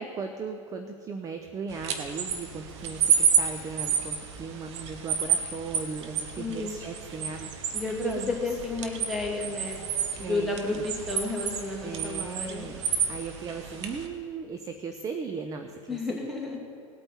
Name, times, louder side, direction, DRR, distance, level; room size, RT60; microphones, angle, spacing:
voice 1, 0.0-7.5 8.0-8.5 10.2-10.9 11.8-16.3, right 5 dB, 20° right, 6 dB, 0.6 m, -37 dB
sound 1, 1.7-14.1, right 7 dB, 55° right, 1.3 m, -30 dB
voice 2, 6.4-6.7 7.7-9.8 10.2-12.7 15.9-16.7, left 3 dB, ahead, -1 dB, 2.3 m, -32 dB
18.5 x 8.8 x 4.3 m, 2.4 s
figure-of-eight pair, 90°, 18 cm